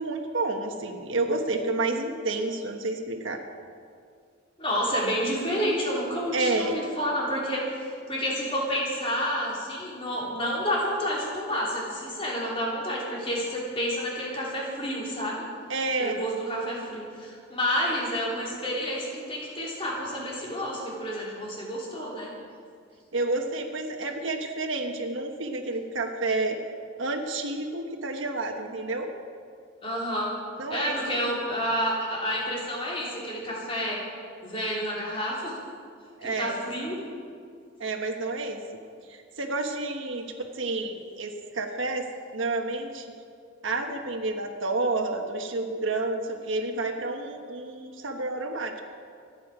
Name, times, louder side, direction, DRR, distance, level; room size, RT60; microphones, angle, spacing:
voice 1, 0.0-3.4 6.3-6.8 15.7-16.2 23.1-26.6 27.0-29.1 30.6-31.2 36.2-36.6 37.8-38.6 39.1-40.3 40.5-42.1 42.3-43.1 43.6-48.8, right 2 dB, 75° right, 3 dB, 1.3 m, -30 dB
voice 2, 4.6-15.4 16.0-22.3 29.8-30.4 30.7-34.0 34.4-35.6 36.2-37.0 40.2-40.4, equal, 30° left, -5 dB, 3.5 m, -29 dB
26.0 x 9.2 x 5.0 m, 2.3 s
head